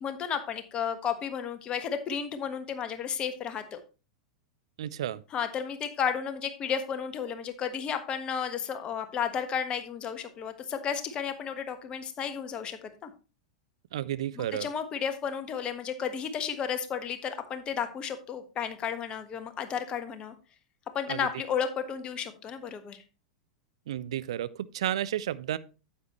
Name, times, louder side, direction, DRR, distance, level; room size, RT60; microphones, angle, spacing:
voice 1, 0.0-3.8 5.3-13.1 14.4-20.3 20.9-23.0, left 7 dB, 30° left, 1.3 m, -33 dB
voice 2, 4.8-5.2 13.9-14.7 21.1-21.3 23.9-25.6, right 11 dB, 65° right, 0.5 m, -32 dB
9.6 x 8.2 x 3.0 m
figure-of-eight pair, 90°, 3 cm